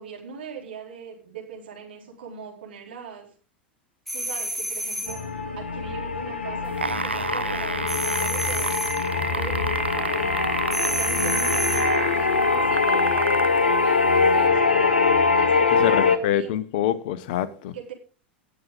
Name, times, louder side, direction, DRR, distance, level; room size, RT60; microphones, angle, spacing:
voice 1, 0.0-3.3 4.1-5.3 5.6-8.8 9.4-10.4 10.8-16.5 17.7-17.9, right 6 dB, 65° right, 4.0 m, -40 dB
sound 1, 4.1-5.3 7.9-9.1 10.7-12.0, right 1 dB, ahead, 1.8 m, -30 dB
sound 2, 5.1-16.2, left 4 dB, 75° left, 1.2 m, -23 dB
sound 3, 6.7-13.6 14.4-14.5, right 3 dB, 85° right, 0.5 m, -30 dB
voice 2, 15.7-17.7, left 10 dB, 55° left, 1.0 m, -26 dB
18.5 x 7.4 x 3.9 m
figure-of-eight pair, 85°, 6 cm